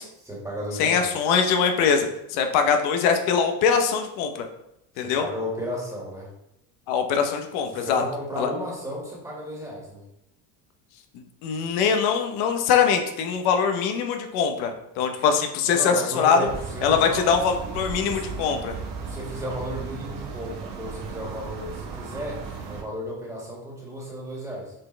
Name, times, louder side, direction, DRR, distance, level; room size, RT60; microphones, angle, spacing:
voice 1, 0.2-1.0 5.0-6.3 7.7-10.1 15.7-17.2 18.0-18.2 19.0-24.7, equal, 10° right, -4 dB, 2.0 m, -34 dB
voice 2, 0.8-4.5 5.0-5.3 6.9-8.0 8.4-8.5 11.4-16.4 16.8-18.8, left 6 dB, 75° left, 5 dB, 1.0 m, -22 dB
sound 1, 16.5-22.8, right 5 dB, 55° right, 1.4 m, -36 dB
7.8 x 4.3 x 3.3 m, 0.82 s
cardioid pair, 150°, 39 cm